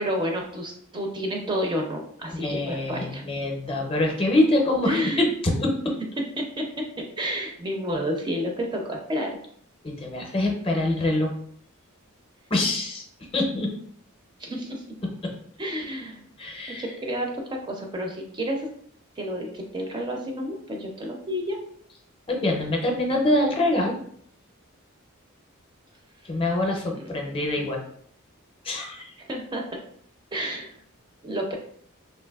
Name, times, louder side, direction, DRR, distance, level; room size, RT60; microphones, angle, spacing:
voice 1, 0.0-3.2 4.9-5.3 6.4-6.7 7.0-9.4 14.4-14.8 15.6-16.2 16.8-18.7 19.2-21.6 26.9-27.1 29.3-29.6 30.3-30.7 31.2-31.5, equal, 20° right, 1 dB, 0.4 m, -30 dB
voice 2, 2.3-5.3 5.6-6.0 9.8-11.3 12.5-13.0 13.3-13.7 15.2-15.3 16.4-16.9 22.3-24.0 26.2-27.8 28.6-29.1 30.4-30.5, left 1 dB, 25° left, 1 dB, 0.5 m, -25 dB
3.3 x 2.5 x 2.3 m, 0.63 s
head